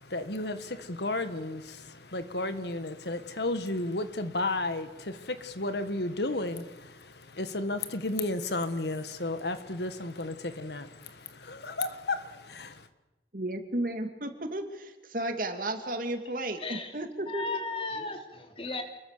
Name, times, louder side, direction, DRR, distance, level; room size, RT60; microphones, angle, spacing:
voice 1, 0.1-12.8, left 2 dB, 75° left, 10 dB, 1.7 m, -33 dB
voice 2, 13.3-17.6, right 1 dB, 50° right, 6 dB, 2.8 m, -33 dB
voice 3, 16.6-17.0 17.3-18.8, left 3 dB, 30° left, 5 dB, 3.1 m, -35 dB
29.0 x 22.0 x 6.8 m, 1.0 s
head